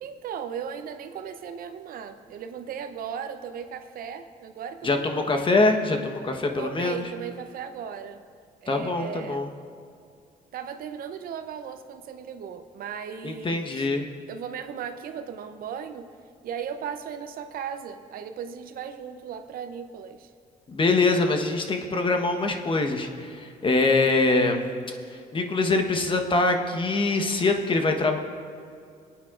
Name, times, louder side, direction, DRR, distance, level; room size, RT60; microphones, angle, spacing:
voice 1, 0.0-5.5 6.6-8.2 8.6-9.4 10.5-13.9 14.3-16.1 16.4-20.3, right 7 dB, 70° right, 9 dB, 0.7 m, -37 dB
voice 2, 4.8-7.0 8.7-9.5 13.2-14.1 20.7-24.6 25.3-28.2, left 3 dB, 35° left, 4 dB, 1.1 m, -24 dB
21.5 x 9.0 x 2.5 m, 2.3 s
cardioid pair, 85°, 15 cm